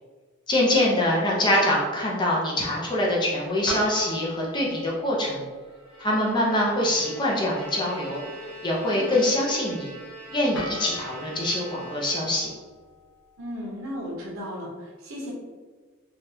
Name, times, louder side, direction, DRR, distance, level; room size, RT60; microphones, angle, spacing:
voice 1, 0.5-5.4 6.0-8.2 8.6-9.9 10.3-12.5, left 1 dB, 20° left, -3 dB, 0.5 m, -24 dB
sound 1, 3.7-5.7 10.5-13.7, equal, 70° left, 0.6 m, -40 dB
Bowed string instrument, 5.7-12.7, right 1 dB, 30° right, 1.0 m, -43 dB
voice 2, 8.9-9.2 13.4-15.3, equal, 85° right, -2 dB, 0.8 m, -35 dB
3.3 x 2.3 x 2.7 m, 1.4 s
head